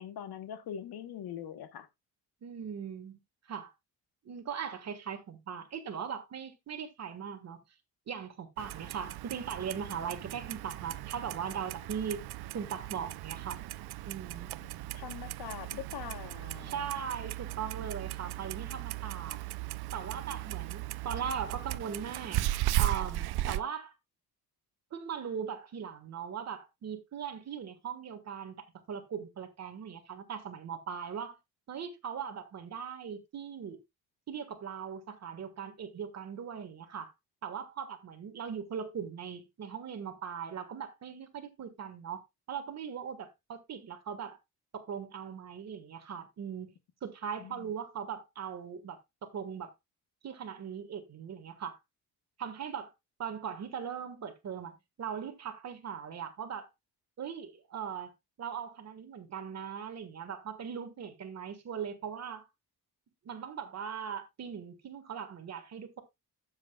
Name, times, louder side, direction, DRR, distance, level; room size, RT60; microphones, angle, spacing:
voice 1, 0.0-1.9 14.6-14.7 14.9-16.9 47.4-47.6, left 9 dB, 80° left, 1.1 m, -42 dB
voice 2, 2.4-3.2 3.5-3.7 4.2-7.6 8.1-12.2 12.5-13.6 14.0-14.5 16.6-19.4 19.9-22.4 22.8-23.9 24.9-31.4 31.7-33.8 34.3-37.1 37.4-42.2 42.5-44.4 44.7-46.7 47.0-49.7 50.2-51.8 52.4-52.9 53.2-56.7 57.2-58.1 58.4-62.5 63.2-66.0, right 7 dB, 45° right, 1.5 m, -39 dB
Clock, 8.6-23.6, right 16 dB, 85° right, 0.5 m, -37 dB
12.0 x 7.7 x 2.2 m
wide cardioid pair, 180°, 37 cm